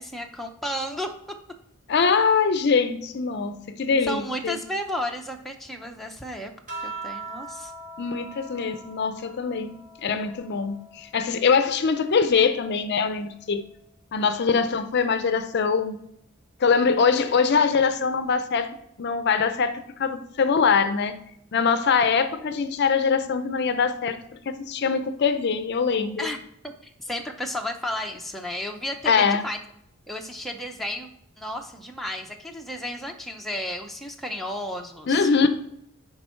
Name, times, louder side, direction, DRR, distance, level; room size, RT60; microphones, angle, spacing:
voice 1, 0.0-1.6 4.0-6.5 6.8-7.7 26.2-29.6 30.1-31.1 31.4-35.3, equal, ahead, 0.6 m, -33 dB
voice 2, 1.9-4.6 8.0-9.7 10.0-13.6 14.1-16.0 16.6-21.2 21.5-26.3 29.1-29.4 35.1-35.5, left 5 dB, 50° left, 0.5 m, -23 dB
sound 1, 6.7-11.5 11.9-13.7 14.9-15.4, right 3 dB, 40° right, 1.8 m, -42 dB
10.5 x 3.6 x 4.4 m
head